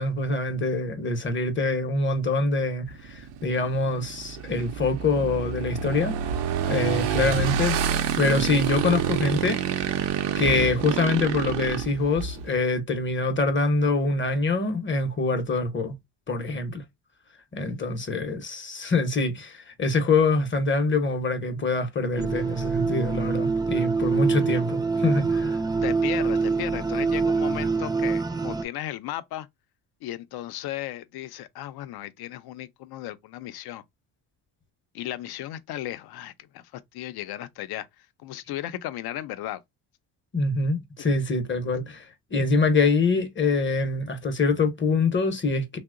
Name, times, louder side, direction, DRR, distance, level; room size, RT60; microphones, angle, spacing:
voice 1, 0.0-6.2 6.6-7.8 8.1-9.6 10.4-16.0 16.3-16.8 17.5-25.6 40.3-45.8, left 3 dB, 30° left, 0.7 m, -25 dB
Motorcycle / Engine, 2.9-12.6, right 8 dB, 85° right, 0.7 m, -28 dB
sound 1, 22.2-28.6, right 4 dB, 10° right, 0.3 m, -25 dB
voice 2, 25.8-29.5 30.0-33.8 34.9-39.6, left 13 dB, 65° left, 0.6 m, -35 dB
2.9 x 2.1 x 3.6 m
cardioid pair, 105°, 41 cm